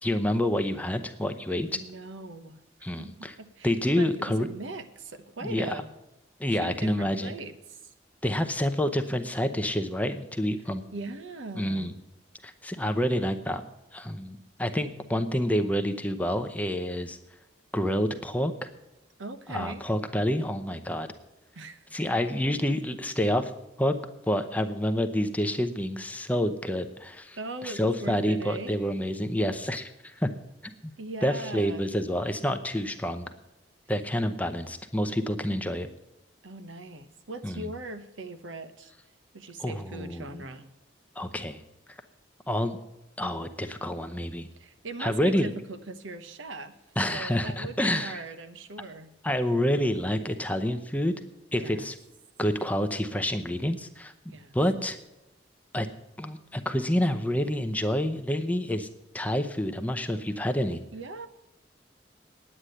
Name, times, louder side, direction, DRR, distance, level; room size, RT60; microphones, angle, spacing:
voice 1, 0.0-1.8 2.8-3.3 3.6-4.5 5.4-5.8 6.4-7.3 8.2-10.8 11.6-11.9 12.4-13.6 13.9-17.2 17.7-18.7 19.5-21.1 21.9-23.5 23.8-24.0 24.3-27.4 27.6-30.3 30.8-30.9 31.2-33.3 33.9-35.9 37.4-37.7 39.6-40.4 41.2-41.6 42.5-42.8 43.2-44.5 45.0-45.5 47.0-48.2 49.2-51.1 51.5-52.0 52.4-54.1 54.5-55.0 55.7-55.9 56.2-58.9 59.1-60.8, equal, 10° left, 8 dB, 0.7 m, -28 dB
voice 2, 1.7-2.6 3.0-3.1 3.4-5.9 6.5-7.9 10.9-11.9 19.2-19.9 21.5-21.9 22.5-22.6 27.4-28.8 31.0-31.9 36.4-38.9 39.3-40.7 44.5-46.7 47.1-49.1 51.6-51.9 54.3-54.5 60.9-61.3, right 2 dB, 90° right, 10 dB, 1.0 m, -40 dB
9.9 x 8.8 x 7.8 m, 0.94 s
head